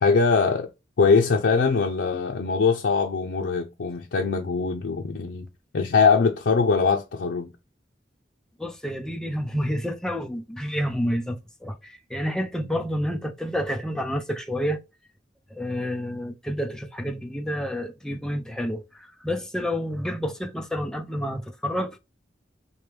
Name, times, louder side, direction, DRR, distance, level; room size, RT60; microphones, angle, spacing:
voice 1, 0.0-0.7 1.0-5.5 5.7-7.5, left 4 dB, 90° left, 0.5 m, -22 dB
voice 2, 8.6-14.8 15.5-18.8 19.2-22.0, equal, 5° left, 0.4 m, -29 dB
4.6 x 2.1 x 3.2 m
head